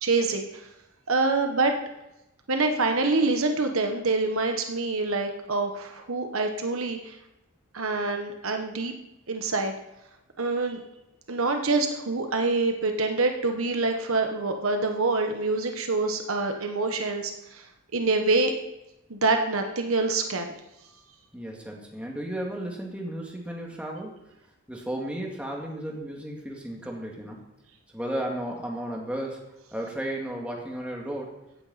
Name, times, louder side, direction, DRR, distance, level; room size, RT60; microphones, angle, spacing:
voice 1, 0.0-0.7 1.1-1.7 2.5-7.2 7.7-8.9 9.3-9.7 10.4-10.8 11.3-17.6 17.9-18.5 19.1-20.5, right 3 dB, 70° right, 4 dB, 1.2 m, -26 dB
voice 2, 21.3-24.2 24.7-27.5 27.9-29.4 29.7-31.3, right 1 dB, 5° right, -1 dB, 2.1 m, -34 dB
16.0 x 8.6 x 4.2 m, 0.92 s
head